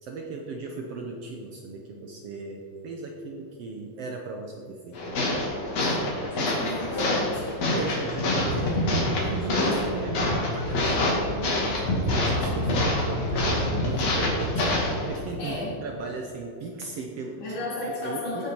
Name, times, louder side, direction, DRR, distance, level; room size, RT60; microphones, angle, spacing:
voice 1, 0.0-5.5 5.8-7.0 7.7-8.8 9.2-17.5 18.0-18.4, right 3 dB, 65° right, 2 dB, 1.7 m, -37 dB
sound 1, 4.9-15.2, left 1 dB, 55° left, 3.2 m, -26 dB
voice 2, 6.4-7.5 15.4-15.7 17.4-18.5, left 2 dB, 70° left, -6 dB, 5.3 m, -33 dB
16.0 x 9.1 x 4.6 m, 2.5 s
omnidirectional pair, 3.7 m